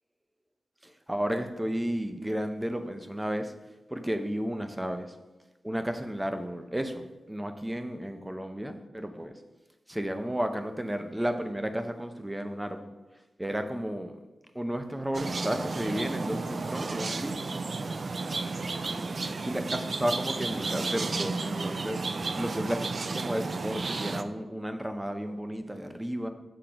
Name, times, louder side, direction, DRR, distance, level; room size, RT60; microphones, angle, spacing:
voice 1, 0.8-3.5 3.9-5.1 5.6-9.4 9.9-12.9 13.4-14.2 14.5-17.5 19.2-22.0 22.3-26.3, equal, 10° right, 7 dB, 0.6 m, -33 dB
sound 1, 15.1-24.2, right 3 dB, 55° right, 0.4 m, -32 dB
6.7 x 3.8 x 5.8 m, 1.1 s
wide cardioid pair, 85°, 0 cm